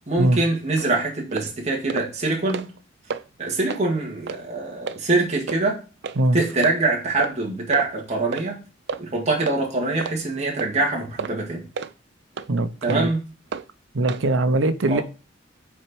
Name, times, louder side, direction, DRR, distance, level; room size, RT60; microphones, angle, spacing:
voice 1, 0.1-2.7 3.4-5.8 6.3-8.6 9.0-11.6 12.8-13.2 14.9-15.0, right 3 dB, 35° right, 1.9 m, -24 dB
sound 1, 0.8-0.9 1.3-1.5 1.9-2.1 2.4-2.8 3.1-3.2 3.7-3.8 4.3-4.4 4.9-5.0 5.5-5.6 6.0-6.2 6.6-6.7 7.2-7.4 7.7-7.9 8.3-8.5 8.9-9.0 9.4-9.6 10.0-10.2 10.6-10.7 11.2-11.4 11.8-11.9 12.4-12.5 12.9-13.0 13.5-13.6 14.1-14.2, right 5 dB, 60° right, 0.5 m, -31 dB
voice 2, 12.5-13.1 13.9-15.0, right 2 dB, 90° right, 0.8 m, -21 dB
6.2 x 4.4 x 6.0 m
head